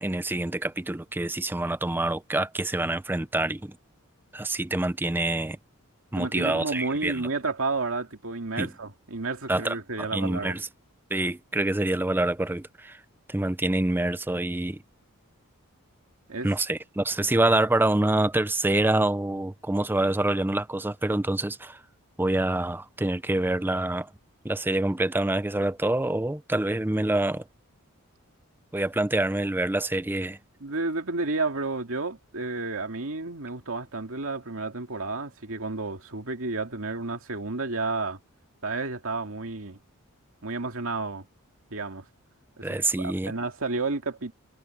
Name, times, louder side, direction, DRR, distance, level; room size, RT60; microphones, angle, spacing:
voice 1, 0.0-3.7 4.3-5.6 6.1-7.2 8.6-8.7 9.5-10.7 11.1-13.0 13.3-14.8 16.4-21.8 22.2-24.1 24.4-27.4 28.7-30.4 42.6-43.3, right 2 dB, 10° right, 0.4 m, -26 dB
voice 2, 6.1-10.6 16.3-16.5 30.6-38.2 38.6-39.8 40.4-41.2 41.7-42.0 42.6-44.3, right 3 dB, 65° right, 2.4 m, -31 dB
head